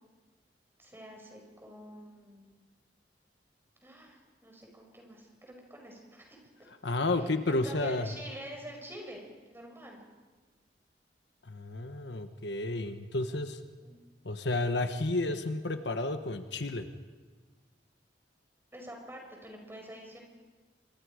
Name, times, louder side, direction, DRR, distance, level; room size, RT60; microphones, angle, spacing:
voice 1, 0.8-2.5 3.8-6.4 7.0-10.0 13.8-13.9 18.7-20.2, equal, 15° right, 1 dB, 5.4 m, -47 dB
voice 2, 6.8-8.1 11.5-13.6 14.2-16.9, left 2 dB, 75° left, 8 dB, 1.2 m, -31 dB
27.0 x 23.5 x 5.0 m, 1.3 s
head